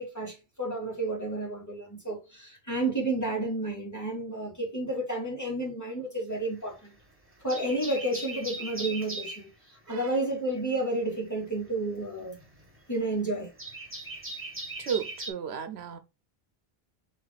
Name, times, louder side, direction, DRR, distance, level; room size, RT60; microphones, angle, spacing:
voice 1, 0.0-6.9 7.4-12.4 12.9-13.5, right 2 dB, 15° left, 2.4 m, -31 dB
sound 1, 6.3-7.0 7.3-9.5 11.1-15.3, right 2 dB, 10° right, 1.3 m, -39 dB
voice 2, 14.8-16.0, right 7 dB, 90° right, 0.9 m, -34 dB
5.8 x 3.4 x 2.4 m
omnidirectional pair, 1.0 m